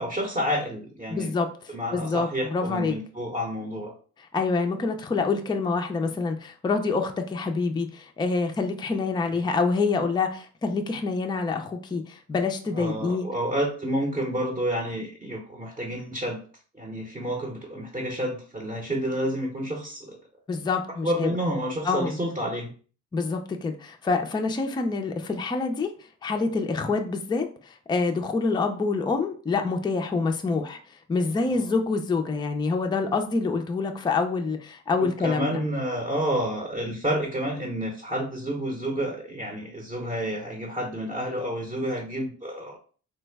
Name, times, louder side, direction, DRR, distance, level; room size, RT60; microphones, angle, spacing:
voice 1, 0.0-1.3 1.7-3.9 9.3-9.5 12.7-16.4 16.7-20.2 21.0-22.7 31.6-31.7 35.0-42.8, equal, 20° right, 0 dB, 0.7 m, -29 dB
voice 2, 1.1-3.0 4.3-13.3 20.5-21.3 21.8-22.1 23.1-25.9 26.2-30.8 31.1-35.6, left 4 dB, 15° left, 4 dB, 0.4 m, -26 dB
3.3 x 2.1 x 3.4 m, 0.41 s
cardioid pair, 90°, 30 cm